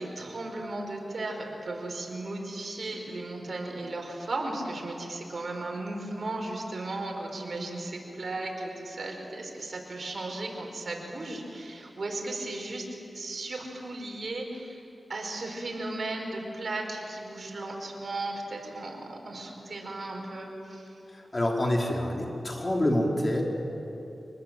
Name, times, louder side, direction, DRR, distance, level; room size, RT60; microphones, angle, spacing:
voice 1, 0.0-14.8 15.1-20.9, right 2 dB, 60° right, 1 dB, 5.1 m, -36 dB
voice 2, 21.1-23.4, left 1 dB, 30° left, 0 dB, 4.4 m, -27 dB
25.5 x 20.0 x 7.7 m, 2.9 s
cardioid pair, 60°, 0 cm